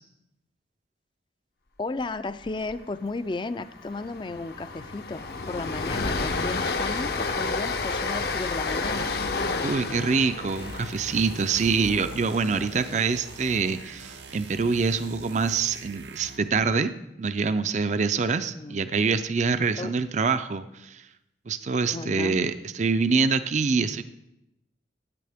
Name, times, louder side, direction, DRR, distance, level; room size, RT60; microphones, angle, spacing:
voice 1, 1.8-9.1 18.5-18.9 19.8-19.9 21.9-22.4, left 3 dB, 25° left, 13 dB, 0.4 m, -34 dB
Train, 2.4-2.7 3.0-3.2 3.5-13.7, left 3 dB, 60° left, 0.8 m, -31 dB
voice 2, 9.6-16.9 17.2-21.0 21.5-24.0, right 4 dB, 40° right, 11 dB, 0.4 m, -25 dB
sound 1, 10.5-16.6, right 3 dB, 80° right, 0.8 m, -43 dB
16.0 x 9.4 x 3.5 m, 0.87 s
head